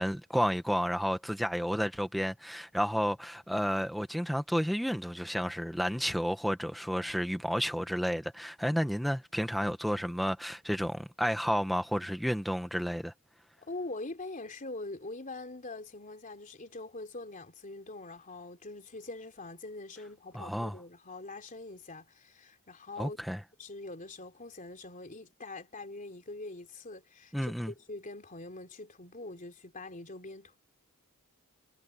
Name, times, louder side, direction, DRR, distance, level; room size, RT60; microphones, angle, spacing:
voice 1, 0.0-13.1 20.3-20.7 23.0-23.4 27.3-27.7, equal, ahead, 1.5 m, -31 dB
voice 2, 13.6-23.2 23.6-30.6, left 2 dB, 35° left, 3.4 m, -43 dB
head